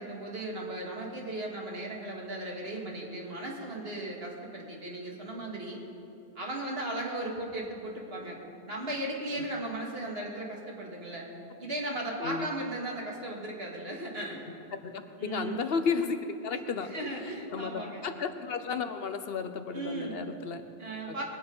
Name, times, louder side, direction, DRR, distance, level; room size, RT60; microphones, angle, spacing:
voice 1, 0.0-5.8 6.4-8.4 8.7-11.3 11.6-14.5 15.2-15.6 16.9-18.0 19.7-20.2 20.8-21.2, right 1 dB, 70° right, -2 dB, 2.4 m, -36 dB
voice 2, 14.8-16.2 16.4-20.6 21.1-21.2, left 5 dB, 70° left, 8 dB, 1.0 m, -33 dB
21.0 x 9.2 x 5.5 m, 2.7 s
omnidirectional pair, 1.1 m